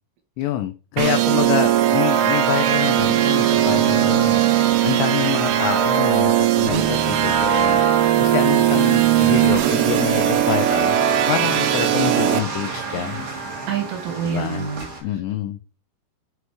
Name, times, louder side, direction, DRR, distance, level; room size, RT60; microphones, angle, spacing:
voice 1, 0.4-13.3 14.2-14.7 15.0-15.6, left 11 dB, 85° left, 8 dB, 2.5 m, -27 dB
sound 1, 1.0-12.4, right 11 dB, 90° right, 3.2 m, -18 dB
sound 2, 2.7-15.0, right 3 dB, 55° right, 2.1 m, -33 dB
voice 2, 13.7-15.1, right 8 dB, 70° right, 3 dB, 3.4 m, -27 dB
7.8 x 3.0 x 4.6 m, 0.33 s
omnidirectional pair, 5.5 m